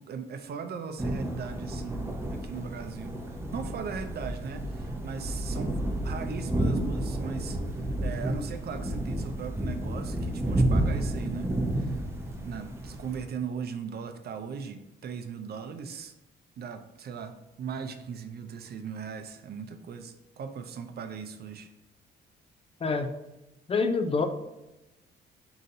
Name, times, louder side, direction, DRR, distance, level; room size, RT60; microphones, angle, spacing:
voice 1, 0.0-12.0 12.4-16.1 16.6-21.7, right 6 dB, 55° right, 8 dB, 0.5 m, -38 dB
sound 1, 1.0-13.2, right 1 dB, 15° right, 0.6 m, -31 dB
voice 2, 22.8-23.1 23.7-24.3, left 4 dB, 30° left, 7 dB, 0.4 m, -26 dB
3.9 x 3.9 x 2.6 m, 0.99 s
cardioid pair, 90°, 20 cm